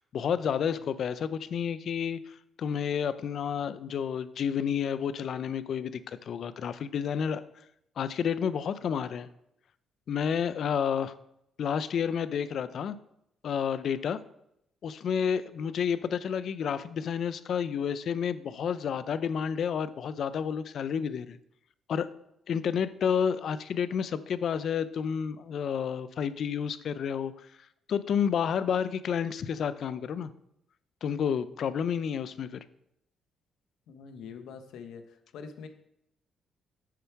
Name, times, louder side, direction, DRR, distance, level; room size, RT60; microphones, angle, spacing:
voice 1, 0.0-7.4 8.0-9.3 10.1-11.1 11.6-13.0 13.4-14.2 14.8-21.4 21.9-22.1 22.5-27.3 27.9-30.3 31.0-32.6, left 7 dB, 60° left, 14 dB, 0.5 m, -30 dB
voice 2, 33.9-35.7, left 6 dB, 80° left, 8 dB, 1.1 m, -44 dB
8.5 x 7.0 x 4.6 m, 0.77 s
cardioid pair, 90°, 0 cm